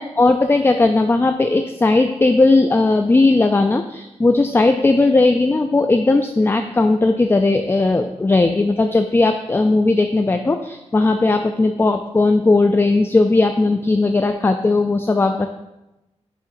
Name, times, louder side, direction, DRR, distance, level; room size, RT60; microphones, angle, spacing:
voice 1, 0.0-15.5, left 2 dB, 20° left, 7 dB, 0.3 m, -17 dB
7.5 x 6.6 x 2.5 m, 0.94 s
wide cardioid pair, 80°, 12 cm